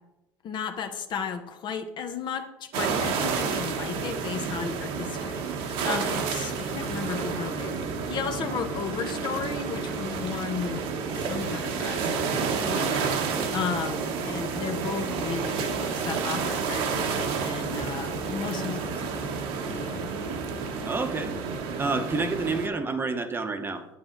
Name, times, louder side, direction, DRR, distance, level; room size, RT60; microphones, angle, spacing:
voice 1, 0.4-10.9 11.1-12.2 12.5-20.1, left 6 dB, 45° left, 7 dB, 1.0 m, -34 dB
sound 1, 2.7-22.7, right 5 dB, 70° right, 1.4 m, -30 dB
sound 2, 6.9-22.9, left 3 dB, 5° left, 1.0 m, -44 dB
voice 2, 20.8-21.3 21.8-23.9, right 3 dB, 20° right, 7 dB, 1.0 m, -28 dB
8.9 x 8.3 x 3.9 m, 0.90 s
supercardioid pair, 105°, 10 cm